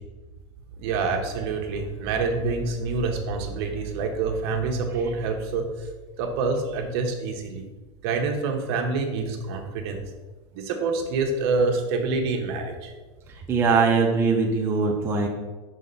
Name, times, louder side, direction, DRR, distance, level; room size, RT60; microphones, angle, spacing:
voice 1, 0.8-5.9 6.2-7.7 8.0-10.1 10.5-12.9, right 4 dB, 55° right, 3 dB, 0.9 m, -27 dB
voice 2, 13.5-15.3, right 4 dB, 15° right, -1 dB, 0.5 m, -21 dB
5.6 x 3.2 x 5.3 m, 1.2 s
supercardioid pair, 160°, 16 cm